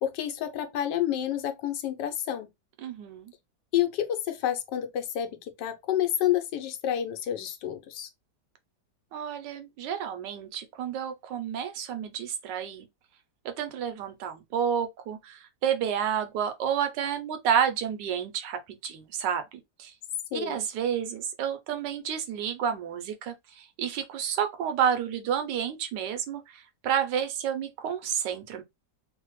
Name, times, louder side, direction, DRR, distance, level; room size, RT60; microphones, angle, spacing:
voice 1, 0.0-2.5 3.7-8.1 20.3-20.6, left 11 dB, 85° left, 1.2 m, -29 dB
voice 2, 2.8-3.3 9.1-12.9 13.4-19.9 20.3-28.6, right 8 dB, 85° right, 1.3 m, -30 dB
3.2 x 2.1 x 2.9 m
omnidirectional pair, 1.8 m